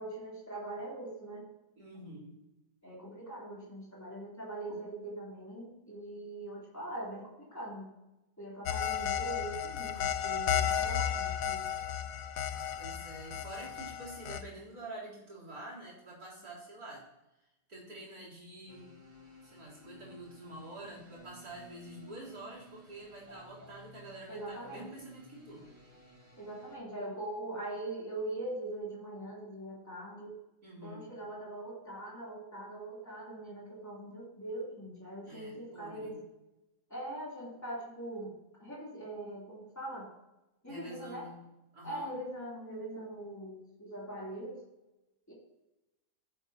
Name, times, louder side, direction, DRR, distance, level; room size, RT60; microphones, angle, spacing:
voice 1, 0.0-1.5 2.8-7.9 8.4-11.6 23.3-23.7 24.3-24.9 26.4-30.4 30.8-36.2 36.9-40.1 40.6-41.3 41.8-44.6 45.3-45.4, right 1 dB, 10° left, -5 dB, 3.4 m, -42 dB
voice 2, 1.8-2.4 12.8-17.1 17.7-19.0 19.4-25.7 30.6-31.1 35.3-36.2 40.7-41.4 41.7-42.1, right 1 dB, 55° right, -4 dB, 4.1 m, -47 dB
sound 1, 8.7-14.4, left 9 dB, 65° left, 0.9 m, -33 dB
sound 2, 18.7-26.8, equal, 35° right, 2.5 m, -56 dB
16.0 x 8.0 x 2.9 m, 0.97 s
omnidirectional pair, 1.9 m